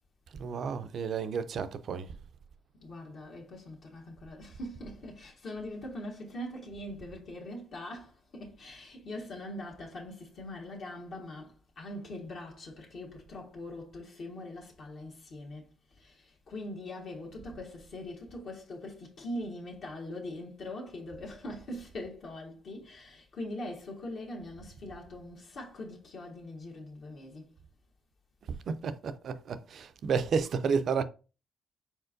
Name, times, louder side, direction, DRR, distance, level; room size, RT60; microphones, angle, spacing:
voice 1, 0.4-2.1 28.7-31.0, right 5 dB, 60° right, 0.4 m, -31 dB
voice 2, 2.8-27.6, left 1 dB, 65° left, 1.4 m, -42 dB
4.4 x 4.3 x 2.6 m
cardioid pair, 90°, 0 cm